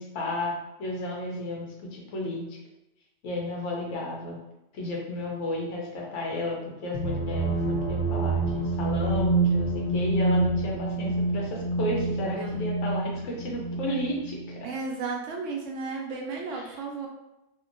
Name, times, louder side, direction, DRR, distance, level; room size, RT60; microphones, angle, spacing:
voice 1, 0.0-2.6 3.2-4.4 4.7-14.7 16.7-16.8, left 1 dB, 75° left, -2 dB, 1.0 m, -33 dB
sound 1, 6.9-14.6, right 2 dB, 60° left, 0.6 m, -27 dB
voice 2, 14.6-17.1, right 4 dB, 80° right, 0 dB, 0.9 m, -34 dB
2.8 x 2.1 x 2.5 m, 0.93 s
omnidirectional pair, 1.3 m